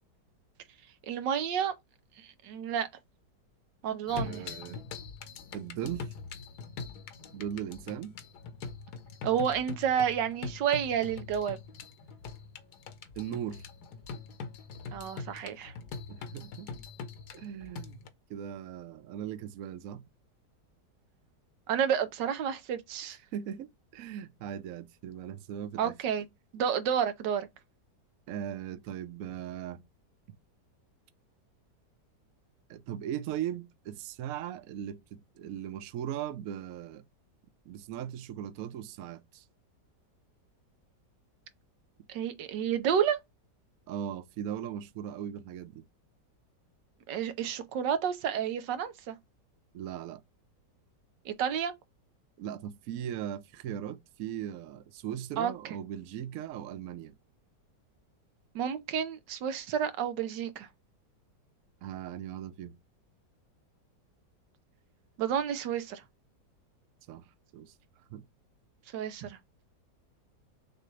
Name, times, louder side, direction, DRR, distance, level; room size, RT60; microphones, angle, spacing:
voice 1, 1.0-1.7 2.2-2.9 3.8-4.4 9.2-11.6 14.9-15.7 21.7-23.2 25.8-26.2 26.5-27.5 42.1-43.2 47.1-49.2 51.2-51.7 55.4-55.5 58.5-60.7 65.2-66.0 68.9-69.4, right 8 dB, 80° right, 1.4 m, -30 dB
sound 1, 4.1-18.1, left 4 dB, 65° left, 1.3 m, -43 dB
voice 2, 4.1-4.8 5.5-6.1 7.3-8.1 13.2-13.6 16.1-16.7 17.3-18.0 18.3-20.0 23.0-25.9 28.3-29.8 32.7-37.0 37.6-39.5 43.9-45.9 49.7-50.2 52.4-57.2 61.8-62.8 67.1-67.3 67.5-68.2, right 10 dB, 65° right, 0.9 m, -39 dB
6.5 x 2.5 x 3.2 m
omnidirectional pair, 1.9 m